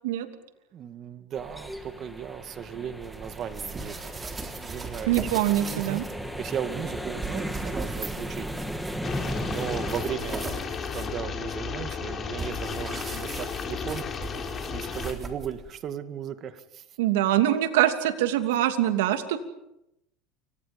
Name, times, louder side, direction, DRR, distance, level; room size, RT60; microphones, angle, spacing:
voice 1, 0.7-4.1 4.4-6.0 6.4-8.5 9.5-10.5 10.9-14.1 14.7-16.8, right 8 dB, 40° right, 10 dB, 2.2 m, -36 dB
sound 1, 1.3-10.0, equal, ahead, 2.8 m, -36 dB
sound 2, 3.0-15.8, right 4 dB, 20° right, 3.7 m, -40 dB
voice 2, 5.1-6.0 17.0-19.4, right 13 dB, 85° right, 7 dB, 2.9 m, -23 dB
sound 3, 9.0-15.1, left 6 dB, 30° left, 4.1 m, -34 dB
29.0 x 25.5 x 5.5 m, 0.82 s
supercardioid pair, 115°, 0 cm